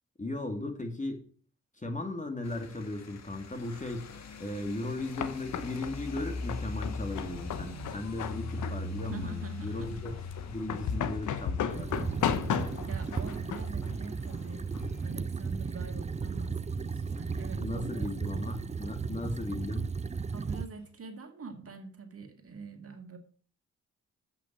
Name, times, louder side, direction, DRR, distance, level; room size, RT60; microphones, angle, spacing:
voice 1, 0.2-1.2 1.8-4.1 4.4-10.1 10.5-12.4 17.6-19.9, left 2 dB, 25° left, 5 dB, 2.3 m, -37 dB
sound 1, 2.4-19.7 20.0-20.9, left 3 dB, 60° left, 1.4 m, -43 dB
sound 2, 4.6-15.0, left 8 dB, 75° left, 0.9 m, -36 dB
voice 2, 9.1-10.0 12.8-14.6 15.0-18.1 20.3-23.2, right 4 dB, 50° right, 5 dB, 1.9 m, -44 dB
sound 3, 11.7-20.7, right 5 dB, 20° right, 0.5 m, -35 dB
7.6 x 5.9 x 7.4 m, 0.44 s
supercardioid pair, 50°, 30 cm